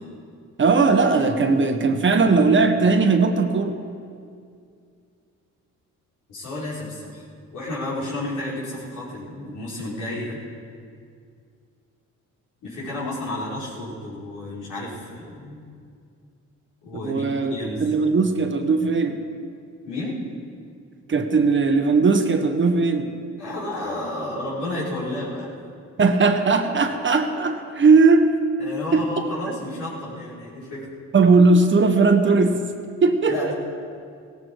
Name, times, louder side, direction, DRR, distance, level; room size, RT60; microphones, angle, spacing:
voice 1, 0.6-3.8 16.9-17.5 17.8-19.2 21.1-23.2 26.0-28.3 28.9-29.0 31.1-32.6 33.0-33.5, right 4 dB, 40° right, 6 dB, 1.3 m, -18 dB
voice 2, 6.3-7.2 7.5-10.4 12.6-15.6 16.8-17.8 19.8-20.2 23.4-25.5 28.6-30.8 33.3-33.5, left 1 dB, 80° left, -8 dB, 5.2 m, -31 dB
17.0 x 15.0 x 4.8 m, 2.3 s
cardioid pair, 90°, 30 cm